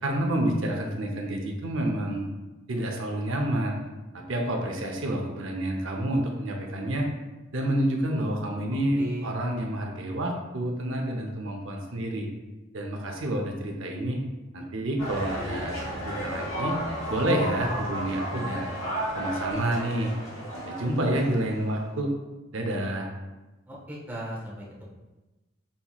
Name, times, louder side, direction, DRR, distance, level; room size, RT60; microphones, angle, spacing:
voice 1, 0.0-2.3 2.7-3.8 4.1-7.1 7.5-12.3 12.7-14.2 14.5-16.8 17.1-18.8 19.1-20.1 20.5-22.1 22.5-23.1, right 1 dB, 70° right, 1 dB, 0.7 m, -29 dB
voice 2, 8.7-9.3 23.7-24.8, right 1 dB, 10° right, -6 dB, 0.9 m, -37 dB
sound 1, 15.0-21.8, equal, 80° left, 1.5 m, -33 dB
5.5 x 2.9 x 2.4 m, 1.1 s
head